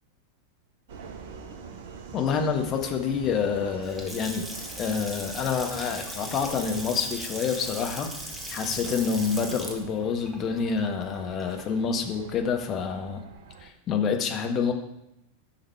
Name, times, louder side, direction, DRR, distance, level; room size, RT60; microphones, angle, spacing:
Subway metro underground, 0.9-13.7, right 5 dB, 55° right, 1.2 m, -45 dB
voice 1, 2.1-4.5 4.8-8.1 8.5-13.2 13.6-14.7, left 6 dB, 30° left, 4 dB, 1.4 m, -27 dB
Water tap faucet / Sink (filling or washing) / Splash splatter, 3.7-11.8, equal, 5° right, 1.6 m, -39 dB
10.0 x 6.5 x 4.7 m, 0.86 s
figure-of-eight pair, 90°, 0 cm